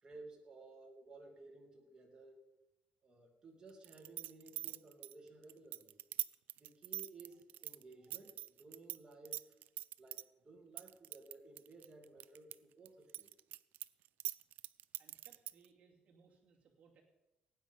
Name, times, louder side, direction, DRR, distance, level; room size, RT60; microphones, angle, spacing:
voice 1, 0.0-2.4 3.0-6.0 6.6-9.5 10.0-13.3, right 3 dB, 25° right, 0 dB, 2.8 m, -57 dB
sound 1, 3.8-9.0 9.2-10.2 10.8-12.5 12.9-15.7, right 14 dB, 80° right, 0.4 m, -43 dB
voice 2, 15.0-17.0, right 6 dB, 45° right, -2 dB, 2.6 m, -67 dB
17.0 x 9.3 x 5.4 m, 0.95 s
cardioid pair, 155°, 3 cm